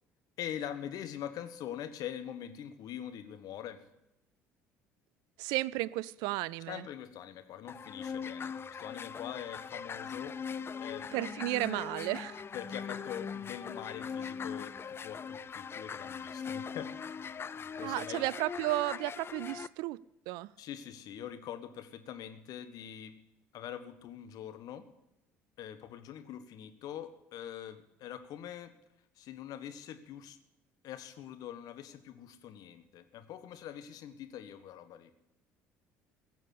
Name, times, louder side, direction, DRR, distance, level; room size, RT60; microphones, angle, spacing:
voice 1, 0.4-3.8 6.7-10.3 10.8-11.1 12.5-16.9 17.8-18.2 20.6-23.1 23.5-24.8 25.6-28.7 29.2-30.4 30.8-35.1, left 10 dB, 60° left, 9 dB, 1.4 m, -43 dB
voice 2, 5.4-6.9 11.1-12.4 17.8-20.0 20.3-20.5, right 19 dB, 70° right, 22 dB, 0.4 m, -33 dB
sound 1, 7.7-19.7, left 6 dB, 35° left, 0.6 m, -41 dB
16.5 x 7.0 x 8.4 m, 0.89 s
hypercardioid pair, 60°, 7 cm